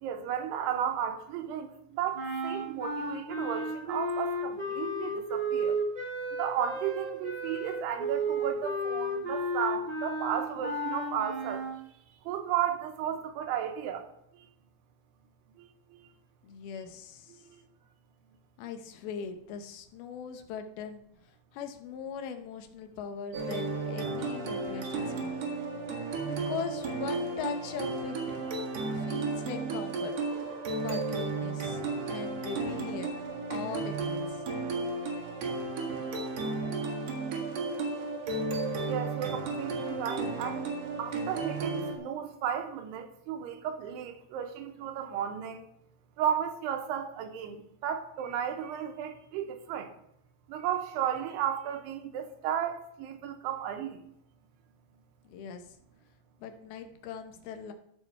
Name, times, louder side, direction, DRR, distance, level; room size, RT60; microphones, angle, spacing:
voice 1, 0.0-5.8 6.4-11.7 12.3-14.1 15.6-15.7 38.8-40.7 41.0-45.6 46.2-49.9 50.5-54.0, right 9 dB, 80° right, 2.8 m, -34 dB
sound 1, 2.1-11.8, right 1 dB, 25° right, 1.0 m, -33 dB
voice 2, 16.4-17.4 18.6-21.0 21.3-25.1 25.5-25.6 26.2-28.2 28.9-30.1 30.8-31.8 32.1-33.1 33.5-34.4 55.2-55.6 56.4-57.7, left 7 dB, 75° left, 2.6 m, -40 dB
sound 2, 23.3-42.0, right 3 dB, 60° right, 1.9 m, -33 dB
13.5 x 4.8 x 4.5 m
omnidirectional pair, 4.8 m